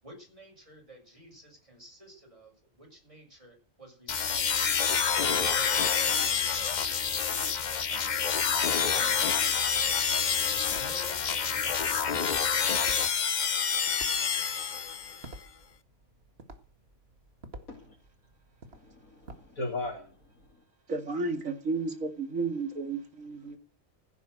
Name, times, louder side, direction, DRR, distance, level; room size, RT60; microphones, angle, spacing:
voice 1, 0.0-6.9 7.9-8.3 8.9-9.4 10.7-12.2, right 1 dB, 25° right, 6.9 m, -51 dB
sound 1, 4.1-15.3, left 6 dB, 40° left, 0.7 m, -27 dB
sound 2, 8.7-20.5, right 2 dB, 45° right, 2.1 m, -53 dB
voice 2, 18.7-20.6, left 2 dB, 85° left, 3.2 m, -38 dB
voice 3, 20.9-23.6, right 3 dB, 70° right, 2.8 m, -32 dB
16.0 x 9.2 x 6.6 m
omnidirectional pair, 1.4 m